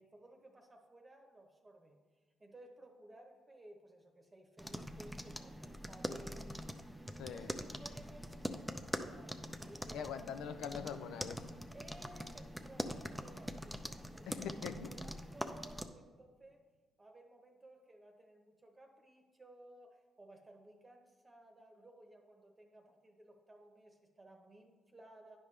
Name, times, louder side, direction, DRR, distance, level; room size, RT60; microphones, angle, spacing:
voice 1, 0.0-2.0 2.4-10.1 11.7-14.6 14.9-16.6 17.0-25.4, right 1 dB, 25° right, 3 dB, 0.9 m, -58 dB
sound 1, 4.6-15.9, equal, ahead, 0.5 m, -44 dB
voice 2, 7.2-7.5 9.9-11.5 14.3-14.9, left 7 dB, 85° left, 9 dB, 0.5 m, -43 dB
10.0 x 5.2 x 3.3 m, 1.4 s
cardioid pair, 90°, 0 cm